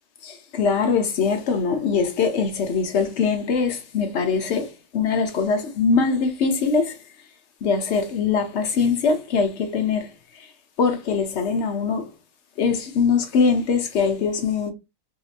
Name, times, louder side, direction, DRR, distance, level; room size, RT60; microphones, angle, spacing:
voice 1, 0.2-7.0 7.6-10.5 10.8-12.1 12.6-14.7, left 5 dB, 60° left, 0.8 m, -22 dB
3.1 x 2.8 x 2.4 m
omnidirectional pair, 1.6 m